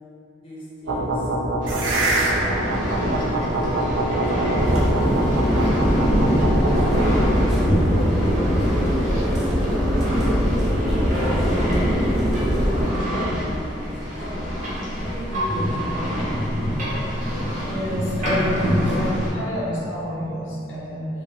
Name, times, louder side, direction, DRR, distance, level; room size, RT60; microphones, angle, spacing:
voice 1, 0.4-1.3 1.7-7.2 7.7-8.1 8.7-11.8 12.6-14.5 15.0-16.7, equal, 30° left, -9 dB, 0.7 m, -38 dB
sound 1, 0.9-7.5, right 1 dB, 85° right, 0.4 m, -24 dB
sound 2, 1.6-19.3, equal, 45° right, 0.8 m, -26 dB
sound 3, 4.6-12.9, equal, 5° right, 0.3 m, -22 dB
voice 2, 17.6-21.1, left 1 dB, 85° left, -6 dB, 0.7 m, -29 dB
2.5 x 2.3 x 3.9 m, 2.8 s
head